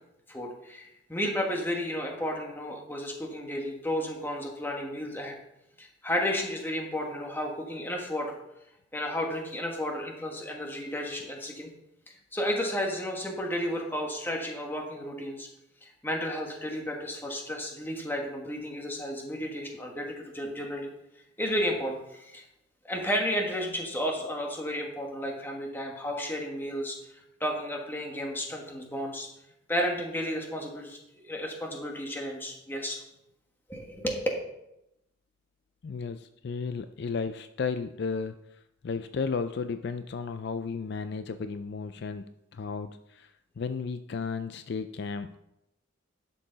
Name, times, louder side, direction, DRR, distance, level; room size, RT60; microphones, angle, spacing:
voice 1, 0.3-5.4 5.8-8.4 8.9-11.7 12.1-15.5 15.8-20.9 21.4-22.4 22.8-27.0 27.4-29.3 29.7-33.0 33.7-34.2, equal, 10° left, 1 dB, 1.4 m, -32 dB
voice 2, 35.8-42.3 42.5-45.4, left 5 dB, 55° left, 10 dB, 0.4 m, -34 dB
11.0 x 6.9 x 4.0 m, 0.85 s
head